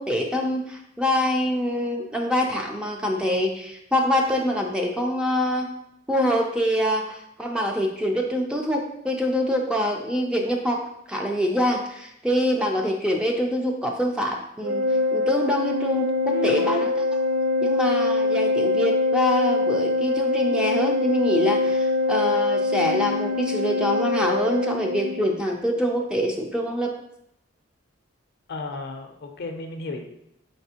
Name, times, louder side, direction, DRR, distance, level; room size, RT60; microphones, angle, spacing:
voice 1, 0.0-5.7 6.1-14.8 15.1-17.0 17.6-26.9, equal, 5° right, 1 dB, 0.3 m, -25 dB
Organ, 14.6-25.4, left 2 dB, 90° right, 0.3 m, -24 dB
voice 2, 28.5-30.0, left 2 dB, 55° left, 5 dB, 0.5 m, -33 dB
4.3 x 3.3 x 2.8 m, 0.78 s
head